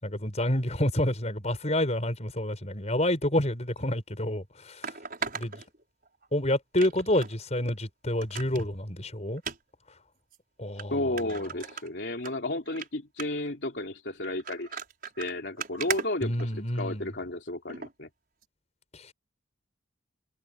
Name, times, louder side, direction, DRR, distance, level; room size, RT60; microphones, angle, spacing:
voice 1, 0.0-4.8 5.4-5.5 6.3-9.4 10.6-11.0 16.2-17.1, left 1 dB, 35° left, 6.7 m, -28 dB
sound 1, 3.8-3.9 4.8-6.3 6.8-7.3 7.7-7.8 8.2-8.7 9.4-9.6 10.3-10.4 10.8-10.9 11.2-12.3 12.7-12.9 13.2-13.5 14.2-16.9 17.7-17.9 18.4-18.5, right 6 dB, 50° right, 6.1 m, -37 dB
voice 2, 10.9-14.8 15.2-18.1, left 1 dB, 70° left, 2.9 m, -33 dB
head